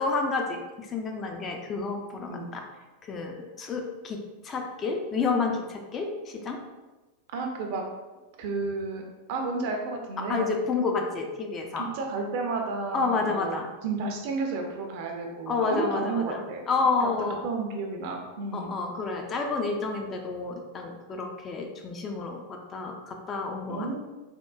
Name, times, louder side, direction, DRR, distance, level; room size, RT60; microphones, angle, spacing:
voice 1, 0.0-2.6 3.0-6.6 10.2-11.9 12.9-13.7 15.5-16.4 16.7-17.4 18.5-24.0, left 4 dB, 25° left, 2 dB, 0.3 m, -30 dB
voice 2, 7.3-7.8 8.4-9.0 9.3-10.5 11.8-16.7 17.0-17.1 17.4-18.7 23.7-24.0, right 3 dB, 50° right, 2 dB, 0.5 m, -32 dB
3.5 x 2.1 x 2.3 m, 1.2 s
figure-of-eight pair, 90°, 0 cm